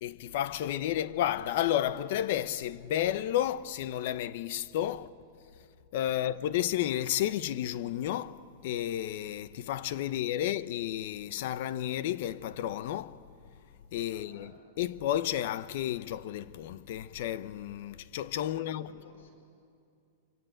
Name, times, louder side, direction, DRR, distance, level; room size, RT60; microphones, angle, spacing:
voice 1, 0.0-5.1 5.9-13.2 13.9-14.5 14.8-18.9, left 12 dB, 50° left, 0.8 m, -32 dB
voice 2, 6.1-6.5 10.1-10.2 10.5-10.7 14.1-14.6 18.5-19.3, left 4 dB, 85° left, 4.8 m, -56 dB
25.5 x 25.5 x 9.0 m
supercardioid pair, 170°, 0 cm